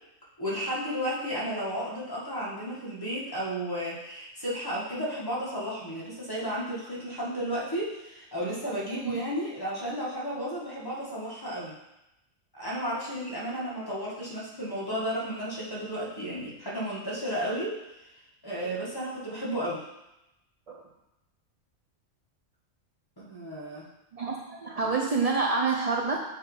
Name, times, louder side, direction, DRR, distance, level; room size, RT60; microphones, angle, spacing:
voice 1, 0.4-11.7 12.5-17.8 18.0-18.1 18.4-19.8 23.2-23.8, equal, 15° left, -7 dB, 1.6 m, -33 dB
voice 2, 24.1-26.2, right 4 dB, 70° right, -1 dB, 0.3 m, -28 dB
6.6 x 3.4 x 4.8 m, 0.92 s
omnidirectional pair, 1.4 m